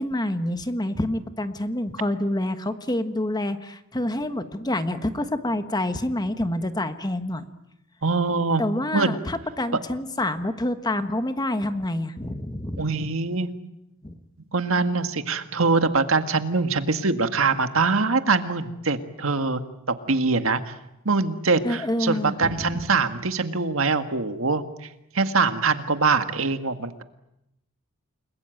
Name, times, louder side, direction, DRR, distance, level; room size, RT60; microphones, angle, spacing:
voice 1, 0.0-7.4 8.6-12.8 14.0-14.2 21.6-22.8, left 1 dB, 20° left, 9 dB, 1.4 m, -27 dB
voice 2, 8.0-8.6 8.9-9.2 12.8-13.5 14.5-19.6 20.1-20.7 21.1-24.9 25.1-27.0, right 4 dB, 65° right, 8 dB, 1.8 m, -23 dB
29.5 x 21.5 x 9.1 m, 0.86 s
head